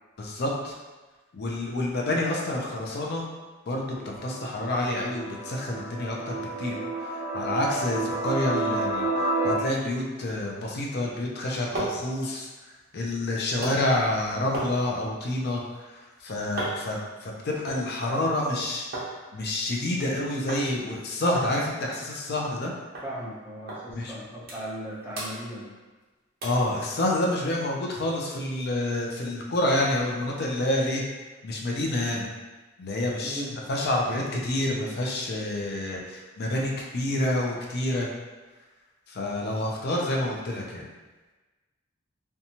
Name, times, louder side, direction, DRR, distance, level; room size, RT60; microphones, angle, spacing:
voice 1, 0.2-0.7 1.3-3.3 3.7-6.7 7.3-9.1 9.4-12.5 12.9-15.6 16.2-18.9 19.3-22.7 23.9-24.1 26.4-31.0 31.4-32.3 32.8-33.4 33.7-38.1 39.1-40.8, left 1 dB, 50° left, -2 dB, 0.4 m, -28 dB
sound 1, 4.0-9.5, right 2 dB, 85° right, 0.4 m, -30 dB
sound 2, 11.2-19.1 19.4-20.1 20.5-20.7 20.9-21.0 21.3-22.7 22.9-23.1 23.7-23.8 24.2-24.8 25.1-26.0 26.4-26.7 27.2-27.3, right 2 dB, 50° right, 0.7 m, -38 dB
voice 2, 23.0-25.7 33.2-33.6, equal, 10° right, -8 dB, 0.7 m, -37 dB
2.7 x 2.2 x 2.8 m, 1.2 s
head